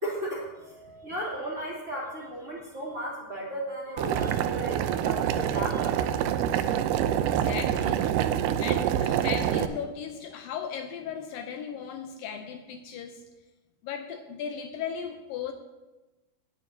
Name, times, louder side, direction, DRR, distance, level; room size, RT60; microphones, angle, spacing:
voice 1, 0.0-5.9, equal, 20° right, -5 dB, 2.7 m, -35 dB
Boiling, 4.0-9.7, right 10 dB, 80° right, 1.9 m, -26 dB
voice 2, 7.2-13.2 13.8-15.5, left 7 dB, 80° left, 6 dB, 2.2 m, -37 dB
19.0 x 9.3 x 2.8 m, 1.1 s
omnidirectional pair, 4.3 m